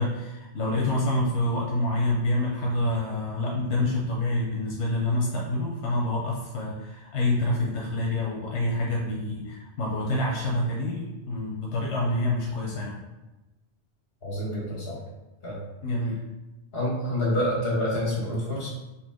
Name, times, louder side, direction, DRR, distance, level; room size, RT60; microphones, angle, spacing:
voice 1, 0.0-13.0 15.8-16.2, left 1 dB, 90° left, -2 dB, 1.0 m, -27 dB
voice 2, 14.2-15.0 15.4-15.6 16.7-18.7, left 1 dB, 60° left, -5 dB, 1.7 m, -27 dB
4.1 x 2.7 x 3.5 m, 1.1 s
omnidirectional pair, 1.2 m